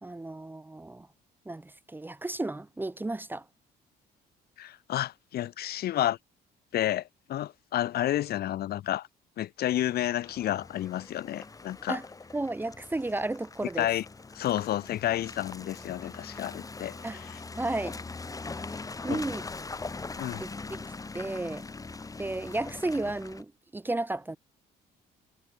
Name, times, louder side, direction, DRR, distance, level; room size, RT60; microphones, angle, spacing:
voice 1, 0.0-1.1 1.5-3.5 11.9-12.1 12.3-13.9 17.0-17.2 17.5-18.0 18.7-19.4 20.4-20.9 21.1-21.7 22.2-24.4, right 2 dB, 10° right, 1.8 m, -33 dB
voice 2, 4.6-6.2 6.7-9.1 9.4-12.0 13.8-14.0 14.3-17.4 19.1-19.2 20.2-20.4, left 13 dB, 65° left, 7.4 m, -30 dB
Car passing by / Engine, 10.2-23.4, left 3 dB, 20° left, 6.0 m, -42 dB
cardioid pair, 110°, 17 cm